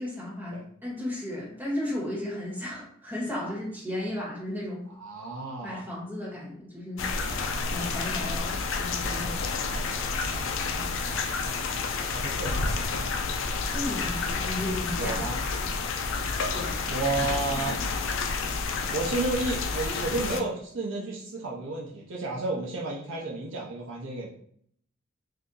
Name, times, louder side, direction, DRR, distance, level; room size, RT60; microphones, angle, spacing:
voice 1, 0.0-4.8 5.6-7.0 7.7-9.4 10.7-10.9 13.7-15.3 15.6-15.7 16.5-16.8, left 1 dB, 10° right, -7 dB, 1.4 m, -34 dB
voice 2, 5.0-5.8 7.1-7.5 7.8-8.0 9.2-10.0 10.3-10.5 10.9-11.2 12.1-13.0 15.0-15.4 16.9-17.8 18.9-24.3, right 2 dB, 60° right, -4 dB, 0.6 m, -32 dB
sound 1, 7.0-20.4, left 4 dB, 65° left, 0.4 m, -30 dB
2.7 x 2.5 x 3.7 m, 0.64 s
head